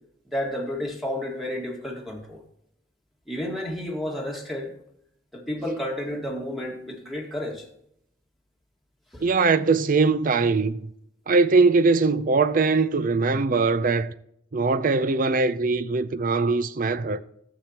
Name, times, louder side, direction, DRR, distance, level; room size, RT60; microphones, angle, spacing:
voice 1, 0.3-2.4 3.3-4.7 5.3-7.7 9.1-9.2, left 1 dB, ahead, 1.8 m, -31 dB
voice 2, 9.2-10.8 11.3-14.1 14.5-17.2, right 4 dB, 50° right, 0.5 m, -21 dB
12.0 x 7.5 x 2.9 m
head